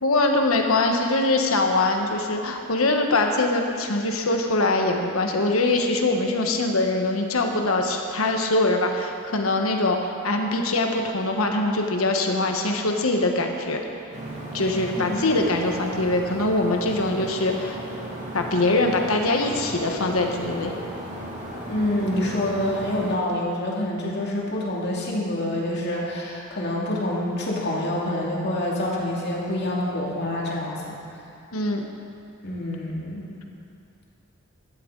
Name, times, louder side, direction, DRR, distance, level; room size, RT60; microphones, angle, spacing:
voice 1, 0.0-13.8 14.5-17.8 18.3-20.7 31.5-31.8, left 2 dB, 85° left, 3 dB, 1.3 m, -23 dB
sound 1, 14.1-23.1, right 1 dB, 35° right, 2.8 m, -35 dB
voice 2, 21.7-30.9 32.4-33.3, left 1 dB, 55° left, -4 dB, 2.5 m, -27 dB
16.0 x 12.5 x 4.0 m, 2.5 s
head